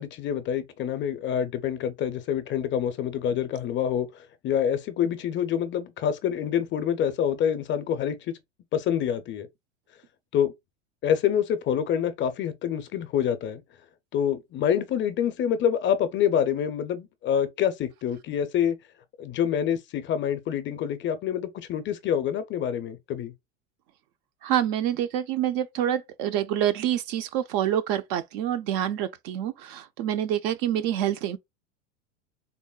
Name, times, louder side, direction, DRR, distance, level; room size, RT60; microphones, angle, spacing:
voice 1, 0.0-8.4 8.7-9.5 10.3-10.5 11.0-13.6 14.1-18.8 19.2-23.3, left 9 dB, 30° left, 0.5 m, -26 dB
voice 2, 24.4-31.4, right 11 dB, 50° right, 0.4 m, -27 dB
3.7 x 2.0 x 2.3 m
hypercardioid pair, 100°, 38 cm